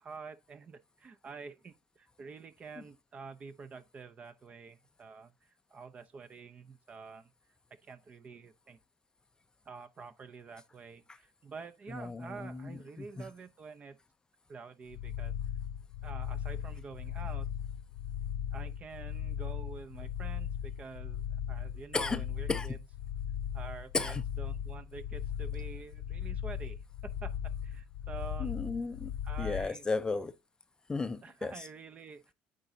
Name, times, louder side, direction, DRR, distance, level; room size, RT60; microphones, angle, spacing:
voice 1, 0.0-7.3 7.8-8.8 9.7-14.0 14.5-15.3 16.0-17.5 18.5-22.8 23.5-28.6 29.2-29.9 31.2-32.3, right 5 dB, 35° right, 0.6 m, -48 dB
voice 2, 11.9-12.7 13.2-13.3 21.9-22.2 22.5-22.7 23.9-24.2 28.4-29.1 29.4-30.3 30.9-31.5, left 3 dB, 20° left, 0.4 m, -34 dB
sound 1, 14.9-29.7, left 9 dB, 85° left, 0.5 m, -38 dB
8.9 x 3.9 x 2.7 m
supercardioid pair, 100°, 4 cm